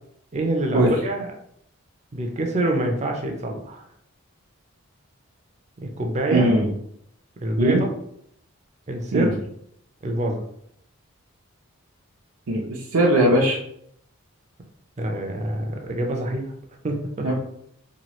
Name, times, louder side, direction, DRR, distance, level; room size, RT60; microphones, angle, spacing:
voice 1, 0.3-1.3 2.1-3.8 5.8-6.5 7.4-7.9 8.9-9.3 10.0-10.4 15.0-16.4 16.8-17.4, right 1 dB, 30° right, 2 dB, 0.4 m, -25 dB
voice 2, 6.3-6.7 7.6-7.8 9.1-9.3 12.5-13.6 17.2-17.4, right 1 dB, 85° right, -3 dB, 0.6 m, -19 dB
2.9 x 2.3 x 2.9 m, 0.71 s
head